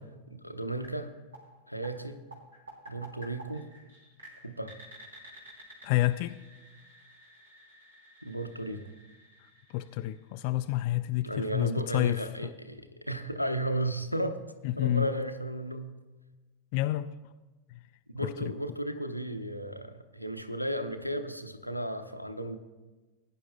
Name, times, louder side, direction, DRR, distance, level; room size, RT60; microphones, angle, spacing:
voice 1, 0.3-1.1 1.7-2.2 2.9-3.7 4.4-4.7 8.2-8.8 11.2-14.4 14.8-15.9 18.1-22.6, right 1 dB, 90° left, 7 dB, 0.7 m, -34 dB
sound 1, 0.8-10.6, right 1 dB, 70° right, 2.9 m, -52 dB
voice 2, 5.8-6.4 9.7-12.2 14.6-15.1 16.7-17.1 17.7-17.8 18.2-18.5, left 17 dB, 45° left, 9 dB, 0.3 m, -29 dB
20.0 x 10.0 x 2.2 m, 1.2 s
figure-of-eight pair, 90°, 0 cm